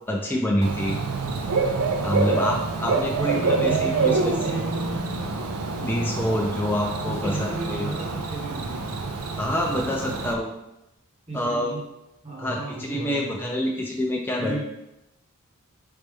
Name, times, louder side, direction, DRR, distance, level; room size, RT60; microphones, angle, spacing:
voice 1, 0.1-1.0 2.0-4.3 5.8-7.9 9.4-10.5 11.3-11.7 12.4-14.6, equal, 10° left, -2 dB, 0.4 m, -26 dB
Bird / Cricket, 0.6-10.3, right 4 dB, 80° right, 0.5 m, -27 dB
voice 2, 3.1-5.1 7.0-8.9 11.3-11.8 12.2-13.7 14.4-14.6, right 3 dB, 30° right, -3 dB, 1.0 m, -34 dB
4.1 x 3.3 x 3.4 m, 0.89 s
head